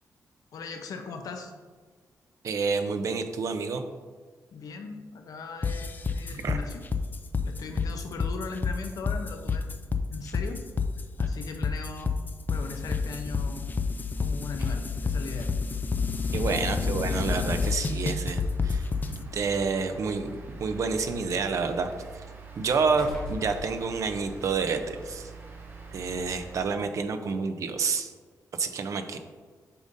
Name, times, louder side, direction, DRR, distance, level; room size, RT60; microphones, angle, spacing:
voice 1, 0.5-1.5 4.5-6.9 7.4-9.8 10.1-10.6 11.2-12.1 12.5-13.6 14.2-15.5 16.3-16.6, left 4 dB, 70° left, 5 dB, 0.7 m, -39 dB
voice 2, 2.4-3.8 6.3-6.6 16.3-21.9 22.6-25.3 25.9-28.1 28.6-29.2, right 5 dB, 55° right, 7 dB, 0.6 m, -29 dB
sound 1, 5.6-19.2, left 4 dB, 30° left, 0.4 m, -29 dB
sound 2, 14.3-26.7, right 2 dB, 35° right, 1.1 m, -46 dB
sound 3, 16.0-16.1 17.2-17.3 17.7-17.9 18.8-20.8 21.2-24.6 25.0-25.1, left 2 dB, 15° left, 1.9 m, -44 dB
8.4 x 5.3 x 2.7 m, 1.5 s
wide cardioid pair, 140°, 6 cm